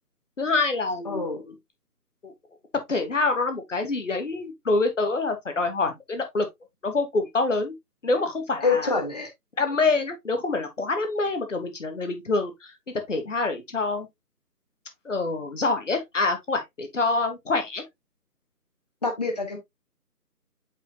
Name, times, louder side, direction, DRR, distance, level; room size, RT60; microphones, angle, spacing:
voice 1, 0.4-1.5 2.2-2.3 2.9-6.4 6.8-7.7 8.0-8.9 9.6-14.1 15.0-17.8, left 3 dB, 50° left, 1.5 m, -26 dB
voice 2, 1.0-1.4 8.6-9.3 19.0-19.6, left 4 dB, 25° left, 1.3 m, -26 dB
8.2 x 4.2 x 2.8 m
figure-of-eight pair, 155°, 48 cm